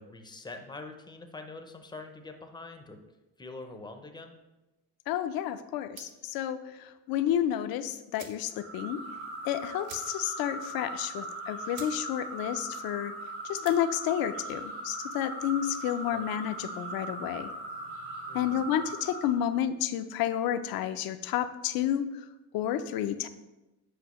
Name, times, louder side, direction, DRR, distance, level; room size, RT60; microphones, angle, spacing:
voice 1, 0.0-3.0 3.4-4.3 16.1-16.3 18.3-18.6, left 3 dB, 10° left, 5 dB, 0.5 m, -44 dB
voice 2, 5.1-9.0 9.4-13.1 13.5-17.5 18.3-22.2 22.5-23.3, left 10 dB, 70° left, 11 dB, 0.5 m, -30 dB
sound 1, 5.9-6.3 7.6-7.7 8.1-8.5 8.8-8.9 9.2-9.3 9.8-10.4 10.8-10.9 11.4-11.5 11.7-12.0 12.3-12.7 13.4-13.8, right 6 dB, 70° right, 1.0 m, -48 dB
sound 2, 8.5-19.4, right 2 dB, 85° right, 2.0 m, -39 dB
8.3 x 4.8 x 3.0 m, 1.0 s
cardioid pair, 140°, 38 cm